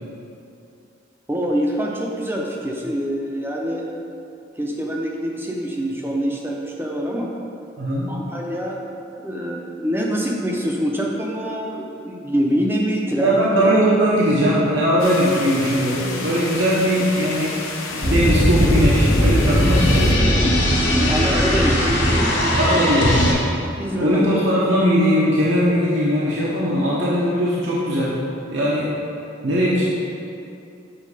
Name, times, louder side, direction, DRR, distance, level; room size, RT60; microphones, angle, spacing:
voice 1, 1.3-3.8 4.5-7.3 8.1-8.8 9.2-13.6 21.0-22.3 22.6-22.9 23.8-24.3, equal, 10° right, -2 dB, 0.7 m, -25 dB
voice 2, 7.8-8.1 13.2-17.5 17.9-20.4 22.6-23.4 24.0-28.2 28.5-28.9 29.4-29.8, equal, 60° right, -7 dB, 0.9 m, -19 dB
sound 1, 15.0-20.2, left 3 dB, 85° left, 0.9 m, -31 dB
sound 2, 18.0-23.3, equal, 60° left, 1.8 m, -18 dB
7.6 x 4.7 x 4.9 m, 2.6 s
head